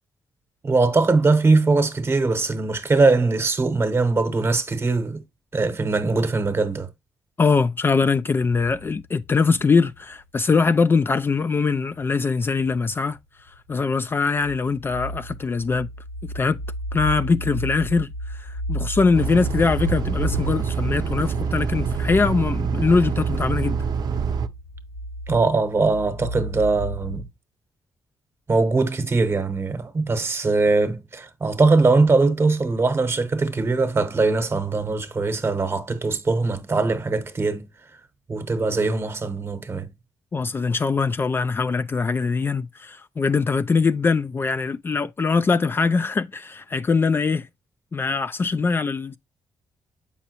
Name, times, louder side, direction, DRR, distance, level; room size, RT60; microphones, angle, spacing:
voice 1, 0.6-5.2 5.5-6.9 25.3-27.3 28.5-37.7 38.3-39.9, right 3 dB, 30° right, 1.0 m, -21 dB
voice 2, 7.4-13.2 13.7-15.9 16.3-16.6 16.9-23.8 40.3-47.5 47.9-49.2, left 4 dB, 30° left, 0.4 m, -22 dB
sound 1, 8.8-10.3 11.6-12.2 12.5-27.3, right 1 dB, 90° left, 1.9 m, -34 dB
sound 2, 19.1-24.5, right 6 dB, 60° right, 0.6 m, -26 dB
7.1 x 5.5 x 2.9 m
cardioid pair, 95°, 8 cm